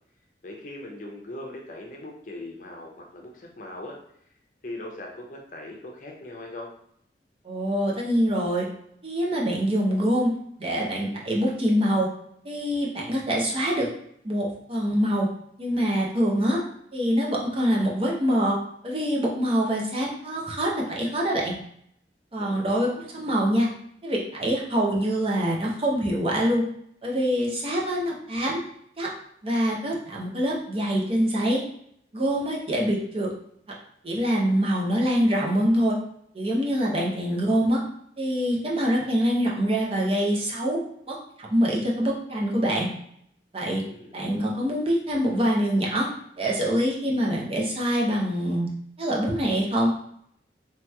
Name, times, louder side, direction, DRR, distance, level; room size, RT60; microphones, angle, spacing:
voice 1, 0.4-4.0 4.3-4.4 4.6-6.7 22.4-22.9 36.9-37.4 43.8-44.2, left 1 dB, 45° left, 0 dB, 0.6 m, -40 dB
voice 2, 7.4-8.7 9.0-10.3 10.6-12.1 12.4-13.9 14.2-15.3 15.6-16.6 16.9-18.5 18.8-21.5 22.3-23.7 24.0-26.6 27.0-28.6 29.0-29.1 29.4-31.6 32.1-33.3 34.0-36.0 36.3-37.8 38.2-40.8 41.1-42.9 43.5-43.8 44.1-46.1 46.4-48.7 49.0-49.9, equal, 30° right, -3 dB, 0.5 m, -24 dB
3.1 x 2.9 x 2.3 m, 0.69 s
head